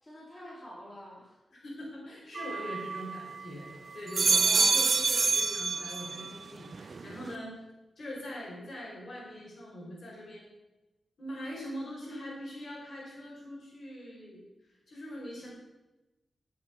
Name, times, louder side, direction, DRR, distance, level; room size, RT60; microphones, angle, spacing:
voice 1, 0.0-1.4 4.2-5.2, equal, 20° left, -5 dB, 3.5 m, -47 dB
voice 2, 1.5-7.6 8.0-10.4 11.2-14.4 14.7-15.5, equal, 60° left, -3 dB, 4.6 m, -42 dB
sound 1, 2.4-3.5 3.9-6.4 6.7-7.3, right 4 dB, 50° right, 0.6 m, -27 dB
14.5 x 7.4 x 5.8 m, 1.0 s
wide cardioid pair, 115°, 0 cm